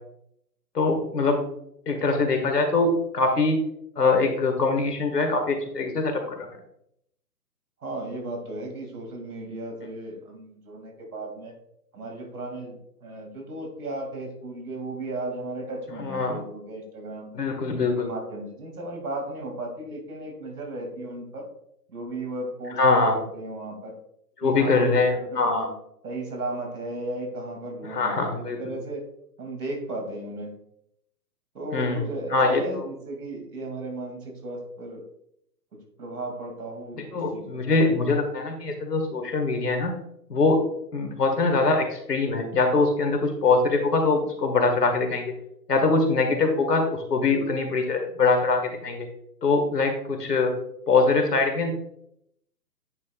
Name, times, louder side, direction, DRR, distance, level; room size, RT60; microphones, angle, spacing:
voice 1, 0.7-1.4 1.9-3.6 4.0-6.5 16.0-16.4 17.4-18.1 22.7-23.2 24.4-25.7 27.9-28.6 31.7-32.0 32.3-32.6 37.1-40.0 40.3-40.6 40.9-45.3 45.7-49.1 49.4-50.5 50.9-51.7, left 3 dB, 70° left, 5 dB, 1.9 m, -23 dB
voice 2, 7.8-11.5 11.9-17.3 17.9-21.5 21.9-22.8 23.1-23.9 24.4-25.4 26.0-29.1 29.4-30.6 31.5-35.0 35.7-38.1, right 2 dB, 60° right, 3 dB, 2.6 m, -35 dB
9.3 x 5.5 x 2.4 m, 0.75 s
hypercardioid pair, 150°, 50 cm